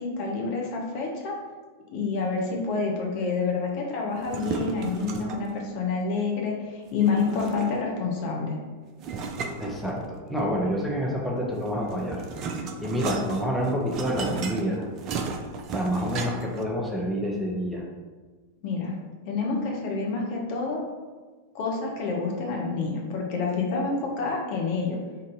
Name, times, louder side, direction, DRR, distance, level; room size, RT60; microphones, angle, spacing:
voice 1, 0.0-1.4 1.9-8.6 18.6-18.9 19.3-20.8 21.5-25.0, left 4 dB, 45° left, -1 dB, 0.7 m, -28 dB
sound 1, 4.2-5.6 7.0-8.0 9.0-10.4 11.6-16.6, right 4 dB, 35° right, 0.4 m, -34 dB
voice 2, 9.6-10.0 10.3-14.8 15.7-17.8, equal, 5° right, -3 dB, 0.7 m, -28 dB
3.7 x 2.6 x 3.9 m, 1.4 s
figure-of-eight pair, 90°, 0 cm